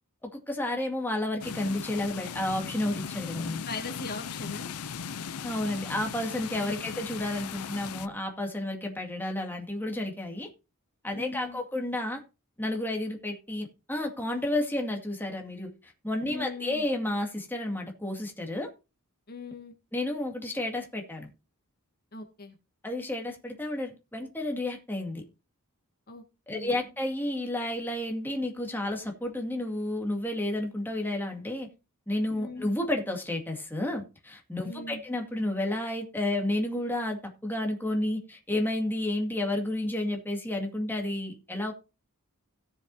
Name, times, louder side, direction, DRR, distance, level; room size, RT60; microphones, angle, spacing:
voice 1, 0.2-3.6 5.4-10.5 11.0-12.2 12.6-18.7 19.9-21.3 22.8-25.2 26.5-31.7 32.1-41.7, left 1 dB, 10° left, 2.2 m, -31 dB
sound 1, 1.4-8.1, left 7 dB, 90° left, 0.6 m, -38 dB
voice 2, 3.7-4.7 6.6-6.9 11.1-11.6 16.3-16.8 19.3-19.7 22.1-22.6 26.1-26.2 26.5-26.8 32.3-32.7 34.6-35.0, left 3 dB, 45° left, 1.9 m, -39 dB
17.5 x 7.2 x 2.7 m
head